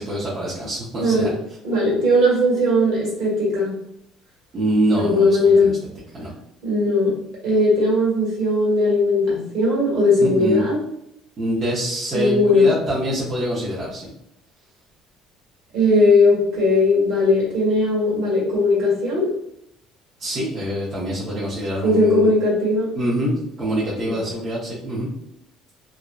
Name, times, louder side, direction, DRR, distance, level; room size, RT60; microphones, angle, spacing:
voice 1, 0.0-1.3 4.5-5.7 6.1-6.3 10.2-10.6 11.4-14.1 20.2-22.3 22.9-25.1, right 1 dB, 35° right, -9 dB, 0.7 m, -25 dB
voice 2, 1.0-1.3 1.6-3.7 4.9-5.7 6.6-7.1 7.4-10.8 12.1-12.7 15.7-19.3 21.8-22.9 24.0-24.2, left 2 dB, 60° right, -5 dB, 1.4 m, -18 dB
2.5 x 2.1 x 2.3 m, 0.76 s
cardioid pair, 140°, 0 cm